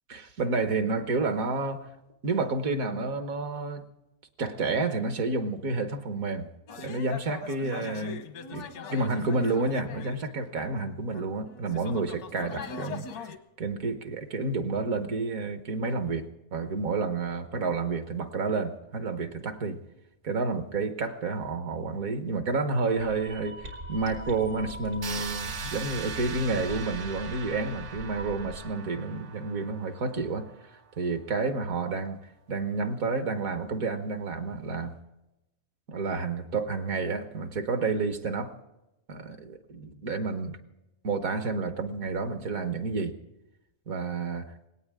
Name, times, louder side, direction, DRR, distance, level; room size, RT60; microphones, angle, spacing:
voice 1, 0.1-1.9 2.2-3.9 4.4-6.5 6.8-8.2 8.5-13.3 13.6-19.8 20.2-30.5 31.0-32.2 32.5-34.9 35.9-38.5 39.1-40.6 41.0-43.2 43.9-44.5, right 3 dB, 70° right, 8 dB, 1.6 m, -30 dB
sound 1, 6.7-10.6 11.1-13.4, left 5 dB, 90° left, 1.5 m, -41 dB
sound 2, 22.9-28.6, equal, 90° right, 3.5 m, -42 dB
sound 3, 25.0-30.8, right 6 dB, 45° right, 0.6 m, -40 dB
19.5 x 17.5 x 3.6 m, 0.92 s
omnidirectional pair, 1.6 m